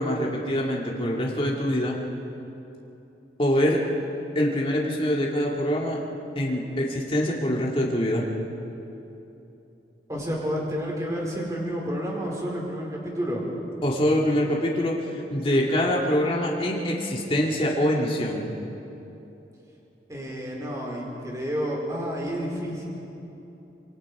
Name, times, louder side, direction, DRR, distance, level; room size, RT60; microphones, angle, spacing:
voice 1, 0.0-2.0 3.4-3.8 4.3-6.0 6.4-8.2 13.8-18.5, equal, 30° left, -3 dB, 2.3 m, -24 dB
voice 2, 10.1-13.4 20.1-22.9, equal, 20° right, -2 dB, 4.5 m, -30 dB
27.0 x 24.0 x 4.9 m, 3.0 s
head